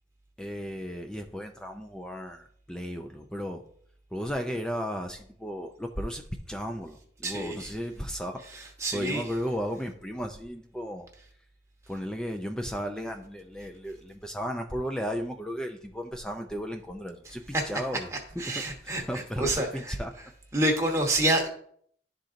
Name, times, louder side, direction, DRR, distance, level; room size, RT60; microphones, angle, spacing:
voice 1, 0.4-3.6 4.1-6.2 6.5-8.4 8.9-11.1 11.9-18.1 18.5-20.1, equal, 5° left, 4 dB, 0.3 m, -35 dB
voice 2, 7.2-7.7 8.5-9.2 17.5-17.6 18.1-20.3 20.5-21.5, right 1 dB, 15° right, 1 dB, 1.0 m, -28 dB
11.5 x 3.8 x 2.5 m, 0.62 s
head